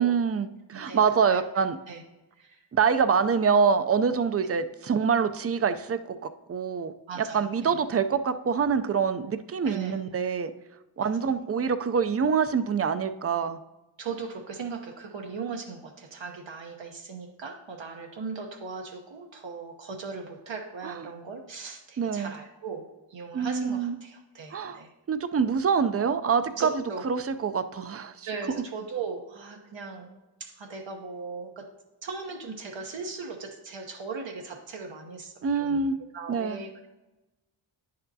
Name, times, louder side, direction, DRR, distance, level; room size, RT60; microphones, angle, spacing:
voice 1, 0.0-1.8 2.7-6.9 7.2-10.5 11.0-13.6 20.8-21.0 22.0-22.4 23.3-24.0 24.5-24.8 25.1-26.7 27.0-28.3 35.4-36.0 36.3-36.6, right 6 dB, 35° right, 11 dB, 0.4 m, -25 dB
voice 2, 0.9-1.4 1.9-2.0 2.3-2.7 7.1-8.0 9.7-10.0 11.0-11.3 14.0-24.9 26.5-27.0 28.3-31.7 32.0-35.9 36.1-36.9, right 5 dB, 80° right, 2 dB, 0.9 m, -38 dB
9.7 x 6.7 x 2.7 m, 1.0 s
wide cardioid pair, 105°, 44 cm